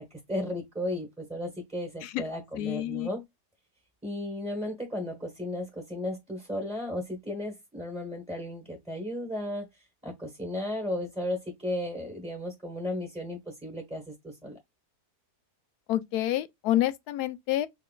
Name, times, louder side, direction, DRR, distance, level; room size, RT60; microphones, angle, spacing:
voice 1, 0.0-3.2 4.0-9.7 10.0-14.6, left 1 dB, 5° right, 0.9 m, -35 dB
voice 2, 2.6-3.1 15.9-17.7, left 13 dB, 80° left, 1.1 m, -28 dB
4.8 x 3.2 x 2.3 m
omnidirectional pair, 1.7 m